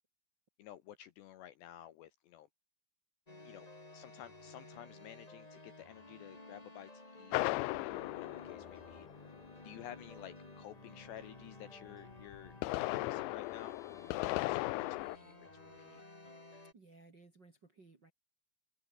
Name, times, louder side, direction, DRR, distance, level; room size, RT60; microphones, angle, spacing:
voice 1, 0.6-2.5 3.4-3.7 3.9-9.1 9.6-12.6 12.8-13.8 14.1-16.0, left 12 dB, 70° left, 2.8 m, -52 dB
sound 1, 3.3-16.7, left 2 dB, 20° left, 0.9 m, -55 dB
sound 2, 7.3-9.4 12.3-15.2, left 21 dB, 90° left, 2.6 m, -36 dB
sound 3, 7.6-16.0, left 3 dB, 40° left, 8.8 m, -61 dB
voice 2, 16.7-18.1, right 3 dB, 30° right, 2.2 m, -60 dB
omnidirectional pair, 5.9 m